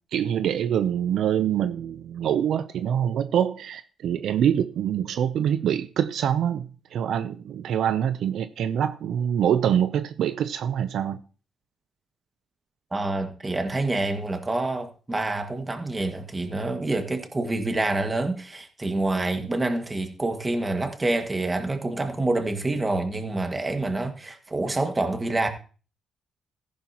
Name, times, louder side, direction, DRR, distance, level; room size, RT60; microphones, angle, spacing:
voice 1, 0.1-11.2 19.4-19.5, right 9 dB, 75° right, 0.6 m, -25 dB
voice 2, 12.9-25.5, right 2 dB, 20° right, 1.8 m, -27 dB
14.5 x 10.5 x 2.9 m
cardioid pair, 115°, 0 cm